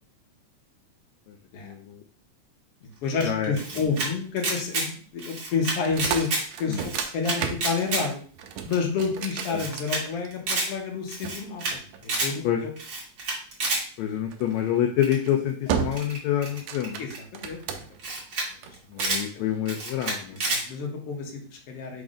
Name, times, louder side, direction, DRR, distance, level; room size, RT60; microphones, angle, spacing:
voice 1, 1.6-2.0 3.2-3.5 6.7-6.8 9.5-9.6 12.4-12.6 14.0-17.0 18.9-20.4, left 10 dB, 75° left, 3 dB, 1.7 m, -27 dB
voice 2, 2.8-6.3 6.6-8.2 8.6-12.7 17.0-17.8 19.3-19.5 20.4-22.0, left 5 dB, 55° left, 1 dB, 2.0 m, -30 dB
Camera, 3.2-4.1 4.4-4.9 5.2-6.4 6.8-8.0 8.4-8.5 8.7-8.8 9.0-9.1 9.4-10.0 10.3-10.7 11.1-11.7 12.0-12.3 12.8-13.8 15.0-15.3 15.9-17.2 17.7-17.8 18.0-18.5 18.7-19.2 19.7-20.6, right 2 dB, 40° right, 1.8 m, -29 dB
sound 1, 5.8-10.5 11.2-12.5 14.3-14.6 15.1-15.3 15.7-16.2 16.5-18.1 18.6-19.2, right 7 dB, 85° right, 1.5 m, -33 dB
5.2 x 3.6 x 5.0 m, 0.43 s
omnidirectional pair, 3.7 m